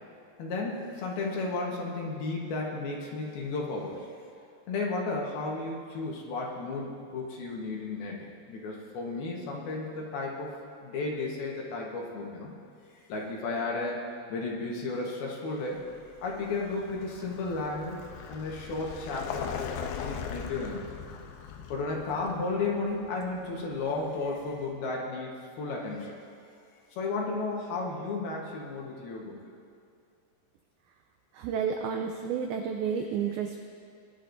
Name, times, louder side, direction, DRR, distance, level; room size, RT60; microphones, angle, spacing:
voice 1, 0.4-4.1 4.7-10.5 10.8-12.5 13.1-14.0 14.3-15.9 16.2-18.0 18.3-20.8 21.7-25.3 25.6-26.2 27.0-29.4, left 3 dB, 70° left, -2 dB, 2.9 m, -33 dB
Vehicle, 15.8-24.6, left 7 dB, 85° left, 2.1 m, -41 dB
voice 2, 31.3-33.6, right 7 dB, 90° right, 4 dB, 2.1 m, -31 dB
20.5 x 11.0 x 2.6 m, 2.3 s
omnidirectional pair, 5.0 m